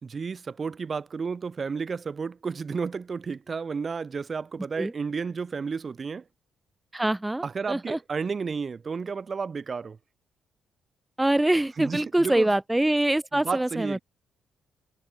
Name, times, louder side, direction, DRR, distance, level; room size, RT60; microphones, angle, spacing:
voice 1, 0.0-6.2 7.4-10.0 11.8-12.5 13.3-14.0, right 5 dB, 40° right, 3.3 m, -32 dB
voice 2, 6.9-7.4 7.7-8.0 11.2-14.0, right 1 dB, 10° right, 1.3 m, -24 dB
cardioid pair, 90°, 0 cm